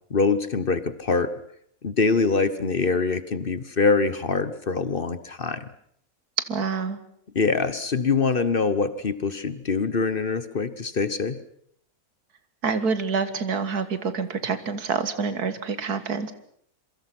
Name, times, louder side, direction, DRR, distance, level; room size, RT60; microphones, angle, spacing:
voice 1, 0.1-1.3 1.8-5.7 7.3-11.4, left 4 dB, 40° left, 14 dB, 1.1 m, -24 dB
voice 2, 6.5-7.0 12.6-16.3, right 5 dB, 85° right, 12 dB, 2.1 m, -27 dB
27.0 x 23.0 x 6.1 m, 0.68 s
omnidirectional pair, 1.6 m